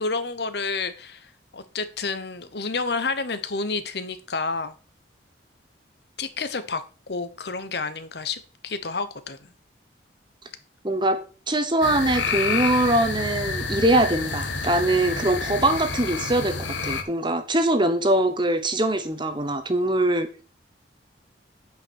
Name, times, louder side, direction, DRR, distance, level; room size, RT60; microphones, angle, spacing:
voice 1, 0.0-4.7 6.2-6.8 7.1-9.5, left 4 dB, 60° left, 12 dB, 1.0 m, -30 dB
voice 2, 10.8-11.2 11.5-16.6 16.8-20.4, right 1 dB, 25° right, 8 dB, 1.2 m, -22 dB
sound 1, 11.8-17.0, left 4 dB, 80° left, 1.6 m, -29 dB
9.2 x 5.6 x 6.2 m, 0.36 s
head